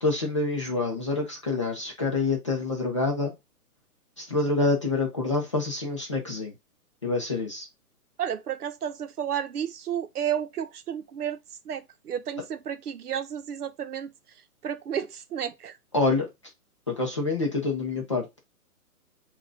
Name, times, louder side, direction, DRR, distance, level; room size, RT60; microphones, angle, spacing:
voice 1, 0.0-3.3 4.2-6.5 7.0-7.7 15.9-16.3 16.9-18.3, left 3 dB, 20° left, 0.5 m, -27 dB
voice 2, 8.2-11.4 11.6-14.1 14.6-15.8, right 9 dB, 75° right, 0.9 m, -32 dB
5.7 x 2.5 x 3.4 m
hypercardioid pair, 165°, 46 cm